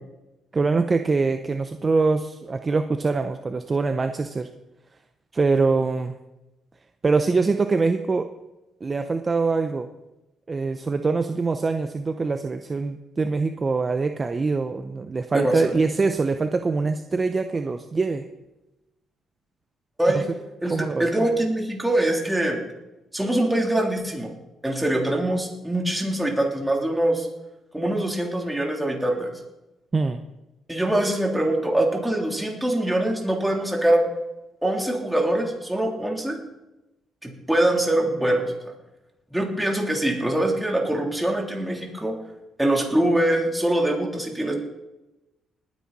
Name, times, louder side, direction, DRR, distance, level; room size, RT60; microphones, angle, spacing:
voice 1, 0.5-4.5 5.3-6.1 7.0-8.3 8.8-9.9 10.5-18.2 20.1-20.2 20.7-21.1 29.9-30.2, right 4 dB, 30° right, 8 dB, 0.7 m, -23 dB
voice 2, 20.0-20.3 20.6-22.6 23.1-24.3 24.6-27.3 27.7-29.3 30.7-34.0 34.6-36.4 37.2-38.7 39.3-42.2 42.6-44.5, right 1 dB, 5° right, 0 dB, 3.4 m, -23 dB
20.0 x 9.5 x 4.2 m, 0.98 s
cardioid pair, 90°, 0 cm